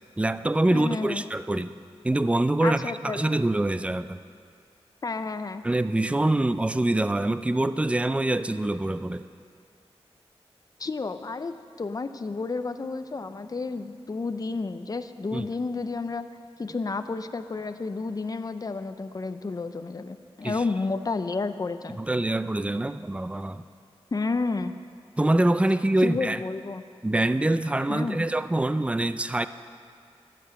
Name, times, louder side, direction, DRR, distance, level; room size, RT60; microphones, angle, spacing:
voice 1, 0.2-1.7 2.0-4.2 5.6-9.2 15.3-15.5 20.4-20.6 22.0-23.6 25.2-26.4 27.0-29.5, right 1 dB, 10° right, 12 dB, 0.4 m, -25 dB
voice 2, 0.7-1.2 2.6-3.4 5.0-5.6 10.8-16.3 16.6-22.0 24.1-24.7 26.0-26.8 27.9-28.3, left 3 dB, 35° left, 10 dB, 0.5 m, -31 dB
12.5 x 7.8 x 9.3 m, 2.3 s
wide cardioid pair, 85°, 11 cm